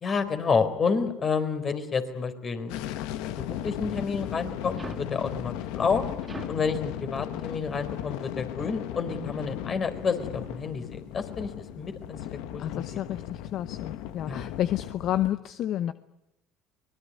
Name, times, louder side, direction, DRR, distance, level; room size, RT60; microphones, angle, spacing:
voice 1, 0.0-2.8 3.4-6.0 6.5-12.2 12.5-12.8 14.3-14.5, left 5 dB, 35° left, 9 dB, 4.1 m, -29 dB
sound 1, 2.7-15.3, left 12 dB, 75° left, 1.3 m, -36 dB
sound 2, 4.8-5.2 6.2-6.7 7.8-8.0 8.7-8.9 9.6-9.8 10.4-10.7, right 3 dB, 20° right, 2.1 m, -44 dB
voice 2, 12.6-15.9, left 12 dB, 60° left, 13 dB, 0.9 m, -30 dB
24.0 x 20.5 x 9.6 m, 0.86 s
supercardioid pair, 80°, 0 cm